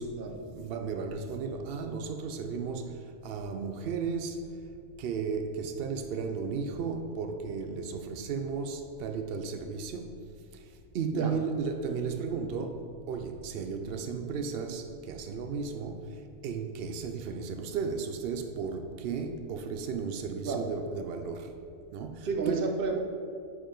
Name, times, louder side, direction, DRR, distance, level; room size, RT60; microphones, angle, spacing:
voice 1, 0.0-4.5 5.0-10.7 10.9-21.6 21.9-22.7, right 5 dB, 85° right, 0.5 m, -35 dB
voice 2, 22.2-23.0, right 4 dB, 45° right, 0.8 m, -31 dB
9.8 x 4.8 x 3.8 m
omnidirectional pair, 1.6 m